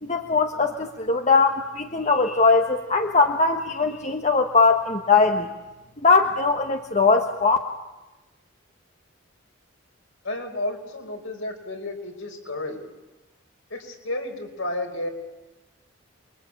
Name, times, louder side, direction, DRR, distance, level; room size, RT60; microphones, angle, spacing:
voice 1, 0.0-5.5 6.0-7.6, left 4 dB, 35° left, 4 dB, 1.4 m, -20 dB
voice 2, 10.2-12.8 13.7-15.1, left 1 dB, 70° left, 4 dB, 4.9 m, -32 dB
28.5 x 23.0 x 8.7 m, 1.1 s
head